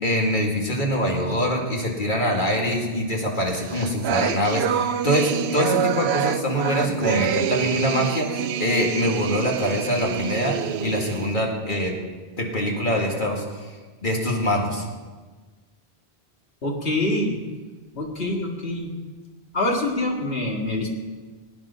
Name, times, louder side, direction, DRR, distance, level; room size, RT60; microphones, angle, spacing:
voice 1, 0.0-11.9 12.4-13.4 14.0-14.8, equal, 50° left, 0 dB, 2.2 m, -24 dB
sound 1, 3.5-11.3, right 9 dB, 85° right, 0.8 m, -27 dB
voice 2, 16.6-17.4 18.0-18.9 19.5-20.9, left 1 dB, 75° left, 0 dB, 2.2 m, -25 dB
17.5 x 9.5 x 5.6 m, 1.4 s
omnidirectional pair, 1.0 m